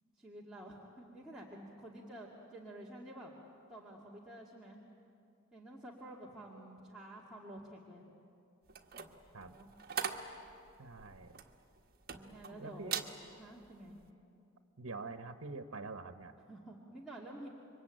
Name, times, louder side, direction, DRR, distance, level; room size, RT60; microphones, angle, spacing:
voice 1, 0.2-3.3 3.7-4.8 5.5-8.1 9.5-9.7 12.1-13.0 13.4-14.0 16.4-17.5, right 1 dB, ahead, -6 dB, 2.2 m, -50 dB
sound 1, 8.7-12.5 12.8-13.2 13.6-13.9, right 7 dB, 45° right, 1.5 m, -41 dB
voice 2, 10.8-11.4 12.6-13.0 14.8-16.3, right 3 dB, 85° right, 8 dB, 1.1 m, -45 dB
27.5 x 24.0 x 9.0 m, 2.7 s
head